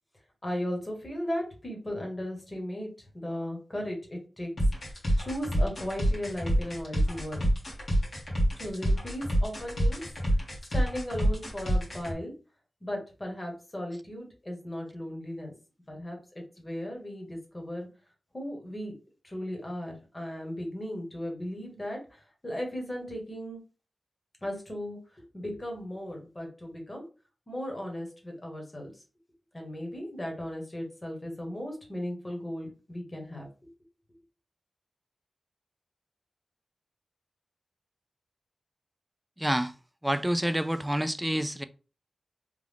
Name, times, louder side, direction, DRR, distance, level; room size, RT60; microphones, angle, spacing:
voice 1, 0.4-4.5 4.8-7.4 8.6-10.0 10.4-12.3 12.8-15.5 15.9-16.2 16.6-17.9 18.3-18.9 19.2-23.6 24.4-27.0 27.5-28.9 29.5-33.5, equal, 30° left, 1.5 m, -36 dB
sound 1, 4.6-12.1, equal, 60° left, 1.7 m, -27 dB
voice 2, 39.4-39.7 40.0-41.6, equal, 10° right, 0.4 m, -28 dB
3.5 x 2.5 x 3.6 m
cardioid pair, 60°, 0 cm